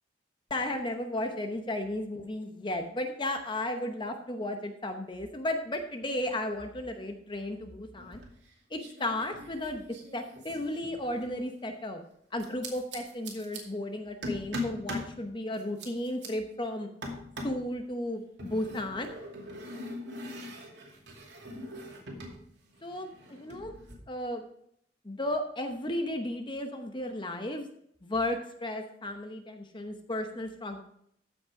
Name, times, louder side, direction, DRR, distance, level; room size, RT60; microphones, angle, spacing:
voice 1, 0.5-8.2 8.7-9.8 10.1-12.0 12.3-16.9 17.4-19.1 22.8-23.7 24.1-24.4 25.0-27.7 28.0-30.8, left 1 dB, 25° left, 5 dB, 0.9 m, -34 dB
sound 1, 8.0-8.5 8.8-11.4 12.4-13.6 14.2-15.1 15.5-16.3 17.0-17.7 18.4-22.4 22.7-23.9, left 1 dB, 70° right, 2.5 m, -41 dB
14.5 x 5.4 x 4.8 m, 0.70 s
head